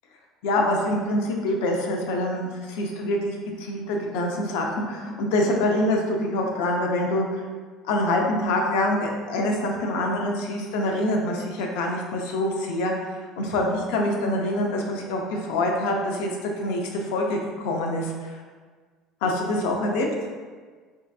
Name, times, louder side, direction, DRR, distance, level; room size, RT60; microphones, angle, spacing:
voice 1, 0.4-7.4 7.9-18.4 19.2-20.1, left 1 dB, 85° left, 1 dB, 0.5 m, -25 dB
3.3 x 2.7 x 2.3 m, 1.5 s
cardioid pair, 165°, 0 cm